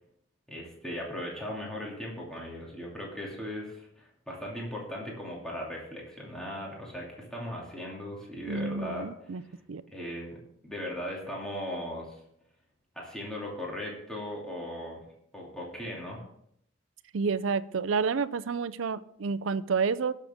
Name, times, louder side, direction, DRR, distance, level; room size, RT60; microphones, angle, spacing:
voice 1, 0.5-9.5 9.9-12.2 12.9-15.0 15.3-16.2, left 1 dB, 5° left, -4 dB, 2.6 m, -38 dB
voice 2, 8.5-9.4 9.7-9.8 17.1-20.1, right 5 dB, 70° right, 16 dB, 0.5 m, -29 dB
18.5 x 6.8 x 3.6 m, 0.70 s
head